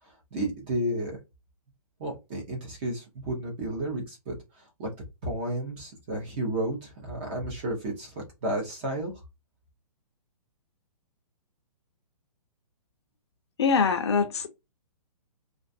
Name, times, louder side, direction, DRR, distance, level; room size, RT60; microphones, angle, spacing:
voice 1, 0.3-1.2 2.0-4.4 4.8-4.9 5.2-8.1 8.4-9.1, right 1 dB, 15° right, 0.5 m, -32 dB
voice 2, 13.6-14.5, left 5 dB, 45° left, 0.5 m, -23 dB
2.3 x 2.3 x 2.5 m
hypercardioid pair, 170°, 20 cm